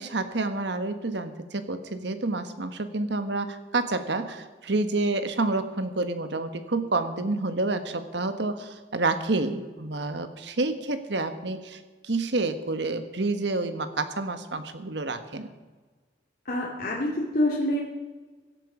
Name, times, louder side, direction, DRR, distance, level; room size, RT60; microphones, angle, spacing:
voice 1, 0.0-15.5, right 2 dB, 70° right, 9 dB, 1.3 m, -29 dB
voice 2, 16.5-17.8, left 1 dB, 55° left, -3 dB, 2.2 m, -26 dB
17.0 x 12.5 x 5.0 m, 1.3 s
head